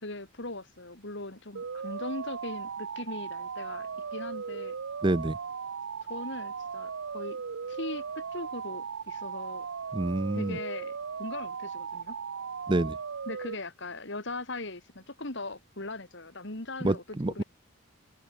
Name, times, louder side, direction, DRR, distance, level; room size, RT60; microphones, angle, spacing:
voice 1, 0.0-4.8 6.0-7.4 7.7-9.7 10.3-12.2 13.3-17.4, left 2 dB, 55° left, 2.8 m, -39 dB
sound 1, 1.5-13.5, right 6 dB, 65° right, 0.6 m, -37 dB
voice 2, 5.0-5.4 9.9-10.6 12.7-13.0 16.8-17.4, right 2 dB, 20° right, 0.6 m, -27 dB
head